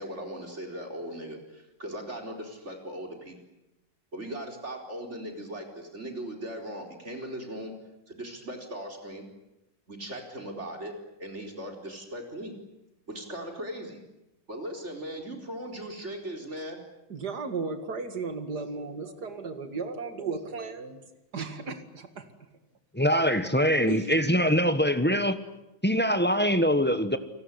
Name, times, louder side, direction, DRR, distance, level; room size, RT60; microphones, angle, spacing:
voice 1, 0.0-3.4 4.1-7.7 8.1-9.2 9.9-12.5 13.1-14.0 14.5-16.8 19.0-19.1, right 1 dB, 35° right, 3 dB, 4.6 m, -38 dB
voice 2, 17.1-21.1 21.3-22.3 23.9-24.8, right 4 dB, 55° right, 9 dB, 2.8 m, -35 dB
voice 3, 22.9-25.4 25.8-27.2, equal, 5° left, 10 dB, 1.1 m, -23 dB
29.5 x 19.0 x 10.0 m, 0.96 s
omnidirectional pair, 2.1 m